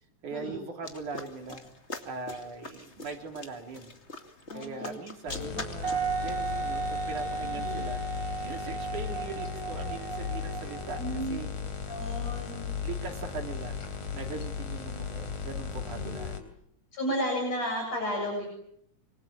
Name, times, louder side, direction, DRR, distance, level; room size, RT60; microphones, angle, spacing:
voice 1, 0.2-1.6 2.1-3.9 4.5-8.0 8.4-11.0 11.3-11.5 12.8-13.8 14.1-16.5, right 4 dB, 85° right, 5 dB, 4.7 m, -40 dB
sound 1, 0.8-7.6, left 2 dB, 25° left, 2.4 m, -44 dB
voice 2, 4.5-4.9 5.3-5.6 7.4-7.8 11.0-11.4 11.9-12.7 15.9-16.3 16.9-18.5, equal, 60° left, 1 dB, 8.4 m, -33 dB
sound 2, 5.3-16.4, left 6 dB, 75° left, 4.9 m, -36 dB
Wind instrument woodwind instrument, 5.8-11.4, right 4 dB, 35° right, 1.6 m, -35 dB
26.0 x 25.0 x 8.8 m, 0.71 s
omnidirectional pair, 3.4 m